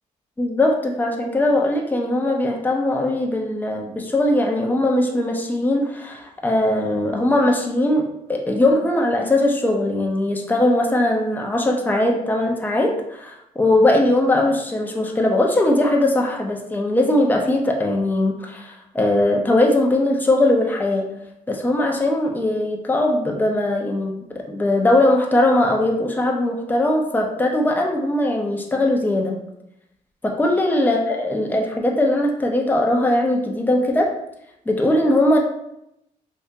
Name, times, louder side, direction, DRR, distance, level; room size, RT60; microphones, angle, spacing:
voice 1, 0.4-21.1 21.5-29.4 30.2-34.1 34.7-35.4, left 1 dB, 10° left, 1 dB, 0.6 m, -20 dB
3.5 x 2.7 x 2.7 m, 0.80 s
cardioid pair, 85°, 14 cm